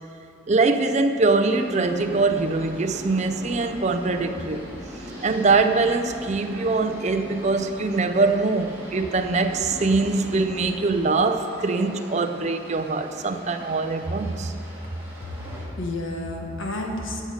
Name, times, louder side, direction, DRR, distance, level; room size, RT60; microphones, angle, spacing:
voice 1, 0.5-4.6 5.2-14.5, right 3 dB, 35° right, 6 dB, 0.5 m, -23 dB
sound 1, 1.4-15.6, equal, 10° right, 2.1 m, -40 dB
voice 2, 15.2-17.2, left 1 dB, 75° left, 1 dB, 1.5 m, -31 dB
16.5 x 6.4 x 5.1 m, 2.8 s
head